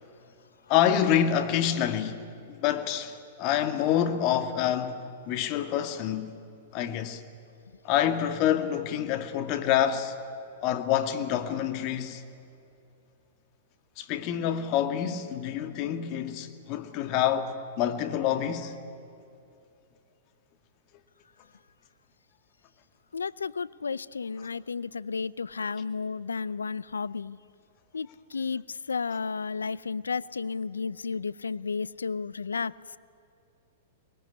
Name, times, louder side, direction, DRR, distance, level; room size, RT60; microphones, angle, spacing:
voice 1, 0.7-6.4 6.7-7.2 7.8-10.1 10.6-12.2 14.0-18.7, left 10 dB, 45° left, 1.9 m, -27 dB
voice 2, 23.1-27.4 27.9-33.0, left 5 dB, 90° left, 0.5 m, -33 dB
23.5 x 20.5 x 9.5 m
hypercardioid pair, 110°, 0 cm